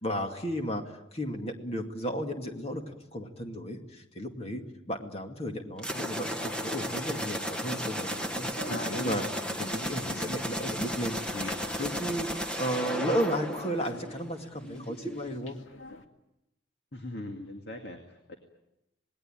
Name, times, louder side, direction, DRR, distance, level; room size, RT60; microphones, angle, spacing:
voice 1, 0.0-0.8 1.1-4.6 4.9-9.2 9.6-12.3 12.6-15.6, equal, 30° left, 4 dB, 2.3 m, -34 dB
sound 1, 5.8-14.4, equal, 5° left, 1.5 m, -34 dB
sound 2, 8.5-16.0, left 1 dB, 80° left, 2.1 m, -46 dB
voice 2, 8.6-9.2 16.9-18.3, left 1 dB, 55° left, 4 dB, 2.3 m, -39 dB
27.0 x 20.0 x 9.0 m, 0.90 s
head